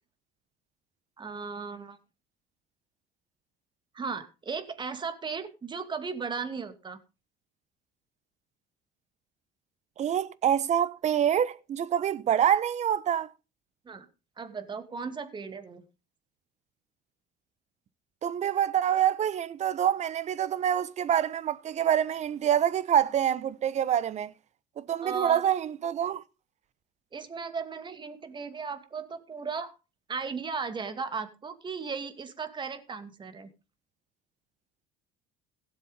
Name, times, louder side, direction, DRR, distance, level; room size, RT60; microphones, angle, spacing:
voice 1, 1.2-2.0 3.9-7.0 13.9-14.1 14.4-15.8 25.0-25.4 27.1-29.7 30.1-33.5, right 5 dB, 25° right, 2.4 m, -36 dB
voice 2, 10.0-13.3 18.2-24.3 24.8-26.2, right 9 dB, 45° right, 1.1 m, -26 dB
17.0 x 7.5 x 5.3 m
supercardioid pair, 105°, 17 cm